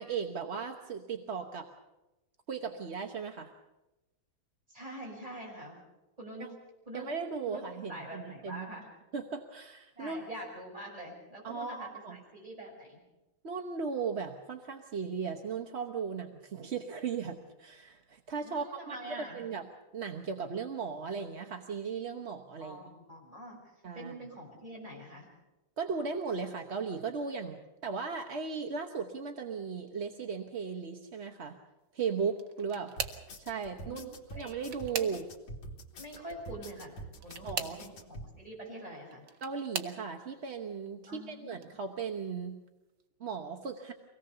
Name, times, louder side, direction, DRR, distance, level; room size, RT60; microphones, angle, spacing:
voice 1, 0.0-1.7 2.5-3.5 6.4-6.5 6.9-8.7 9.1-10.2 11.4-12.2 13.4-19.6 19.9-22.8 23.8-24.1 25.8-31.6 31.9-32.9 33.4-35.2 37.4-37.8 39.4-42.6 43.2-43.9, right 5 dB, 45° right, 3 dB, 1.0 m, -37 dB
voice 2, 4.7-5.8 6.2-6.5 6.9-7.1 7.5-8.9 9.9-13.0 18.4-19.4 22.6-25.3 33.7-34.6 35.0-35.1 36.0-36.9 37.2-39.2 41.1-41.6, right 1 dB, 15° right, -3 dB, 6.7 m, -45 dB
sound 1, 32.3-33.3 34.3-35.6 37.2-37.9 38.9-40.0 40.8-41.1 41.5-41.7 43.0-43.1, right 7 dB, 60° right, 1.7 m, -39 dB
sound 2, 33.0-38.3, right 1 dB, 80° left, 2.7 m, -46 dB
24.0 x 18.0 x 6.8 m, 1.0 s
omnidirectional pair, 2.3 m